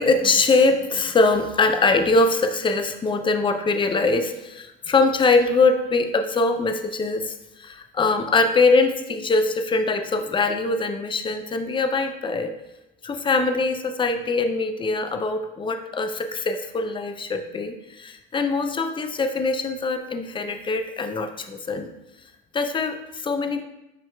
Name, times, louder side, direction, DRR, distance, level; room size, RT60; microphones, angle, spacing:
voice 1, 0.0-12.5 13.0-21.9 22.5-23.6, left 3 dB, 15° left, 6 dB, 0.4 m, -22 dB
7.7 x 2.8 x 2.3 m, 0.95 s
hypercardioid pair, 75°, 29 cm